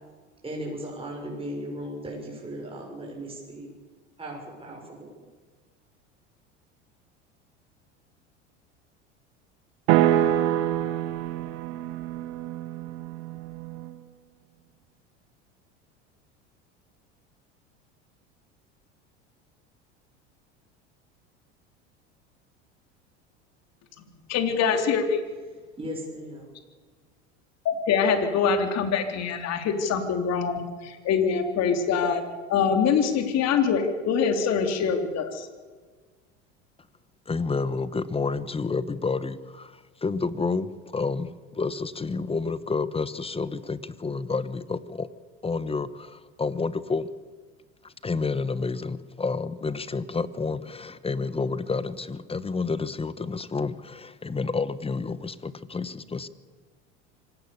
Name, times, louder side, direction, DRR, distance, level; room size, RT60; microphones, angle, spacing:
voice 1, 0.4-3.7 4.2-5.2 25.8-26.5, equal, 15° right, -1 dB, 6.8 m, -37 dB
sound 1, 9.9-14.0, right 12 dB, 70° right, 1.4 m, -26 dB
voice 2, 24.3-25.2 27.7-32.2 32.5-35.5, left 6 dB, 50° left, 6 dB, 3.6 m, -24 dB
voice 3, 37.3-45.1 45.4-47.1 47.8-56.3, left 4 dB, 15° left, 16 dB, 1.2 m, -30 dB
25.5 x 18.0 x 7.0 m, 1.4 s
hypercardioid pair, 85°, 34 cm